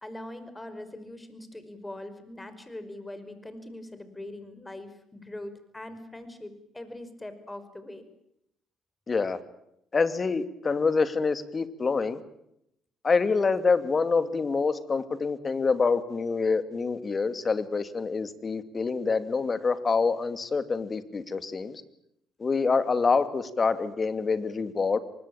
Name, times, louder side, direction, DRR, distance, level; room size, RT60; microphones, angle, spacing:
voice 1, 0.0-8.0, left 1 dB, 15° left, 11 dB, 5.3 m, -42 dB
voice 2, 9.1-9.4 9.9-12.2 13.0-21.8 22.4-25.0, left 4 dB, 35° left, 11 dB, 2.5 m, -26 dB
24.5 x 21.0 x 8.9 m, 0.76 s
supercardioid pair, 65°, 0 cm